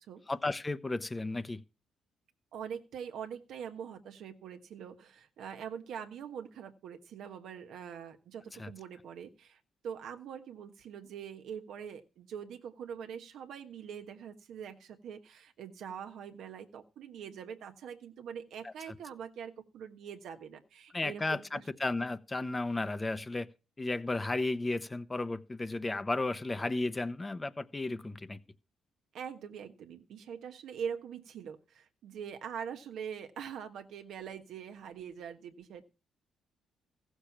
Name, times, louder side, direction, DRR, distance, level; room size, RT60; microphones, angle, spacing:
voice 1, 0.3-1.6 8.6-8.7 18.6-18.7 20.9-23.5 23.8-28.4, left 2 dB, 20° left, 0.8 m, -34 dB
voice 2, 2.5-21.6 29.1-35.8, right 8 dB, 75° right, 1.4 m, -43 dB
15.0 x 6.7 x 5.9 m
cardioid pair, 90°, 0 cm